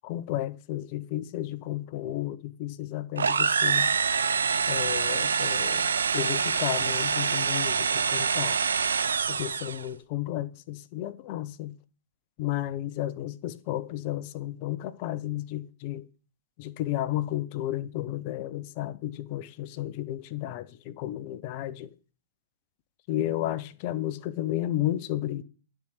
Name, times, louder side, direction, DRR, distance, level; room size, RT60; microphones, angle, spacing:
voice 1, 0.0-3.9 4.7-8.6 9.3-11.7 12.4-16.0 16.6-21.9 23.1-25.4, left 14 dB, 45° left, 1.0 m, -32 dB
sound 1, 3.2-9.9, right 6 dB, 80° right, 0.7 m, -26 dB
10.0 x 5.0 x 8.0 m
hypercardioid pair, 115°, 0 cm